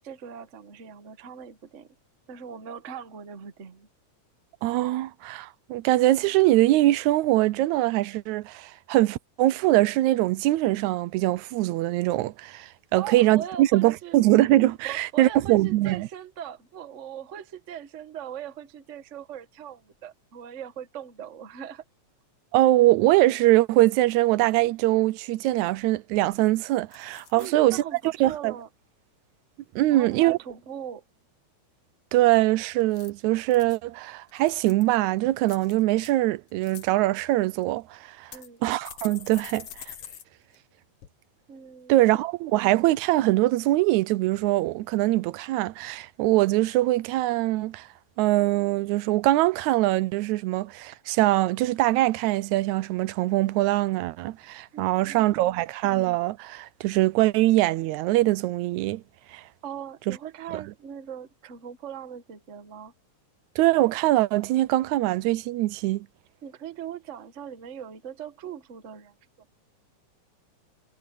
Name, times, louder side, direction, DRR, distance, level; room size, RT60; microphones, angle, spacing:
voice 1, 0.0-1.9 2.3-3.9 12.9-14.2 14.8-21.8 27.3-28.7 29.9-31.0 38.3-38.6 41.5-42.2 54.7-55.6 59.6-62.9 66.4-69.1, right 8 dB, 45° right, 0.9 m, -40 dB
voice 2, 4.6-16.1 22.5-27.8 28.2-28.5 29.8-30.4 32.1-38.3 38.6-39.9 41.9-47.9 48.2-59.0 59.3-59.4 60.1-60.2 63.6-66.1, right 16 dB, 85° right, 1.9 m, -23 dB
sound 1, 25.8-25.9 26.1-26.5 26.9-27.5 28.0-28.3 32.8-33.8 34.3-34.9 35.4-36.1 36.5-36.9 37.6-37.7 38.3-40.2 40.5-40.6 41.0-41.1, left 10 dB, 60° left, 1.9 m, -45 dB
omnidirectional pair, 3.3 m